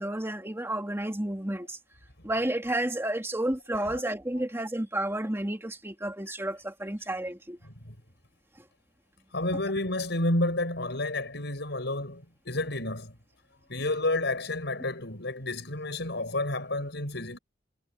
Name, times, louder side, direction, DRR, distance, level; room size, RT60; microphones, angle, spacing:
voice 1, 0.0-1.8 2.2-7.6, right 1 dB, 15° right, 2.3 m, -31 dB
voice 2, 3.7-4.0 7.9-8.0 9.3-13.1 13.7-17.4, left 2 dB, 65° left, 7.2 m, -30 dB
head